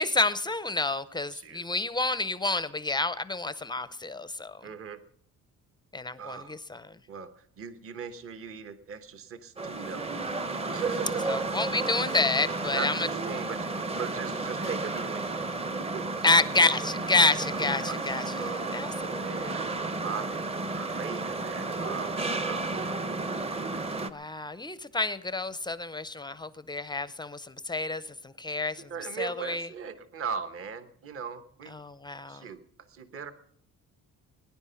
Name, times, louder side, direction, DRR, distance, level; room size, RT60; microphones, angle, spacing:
voice 1, 0.0-4.7 5.9-7.0 11.3-13.1 16.2-19.6 24.1-28.9 29.2-29.7 31.7-32.5, left 3 dB, 15° left, 14 dB, 0.5 m, -29 dB
voice 2, 1.3-1.7 4.6-5.0 6.2-6.6 7.1-11.6 12.7-13.6 14.0-15.5 15.9-16.1 17.5-18.0 18.3-18.8 19.1-20.5 20.7-23.0 28.9-31.8 32.3-33.3, right 6 dB, 40° right, 10 dB, 1.1 m, -39 dB
sound 1, 9.6-24.1, right 3 dB, 20° right, 0.8 m, -32 dB
20.5 x 10.5 x 5.7 m, 0.62 s
cardioid pair, 150°, 33 cm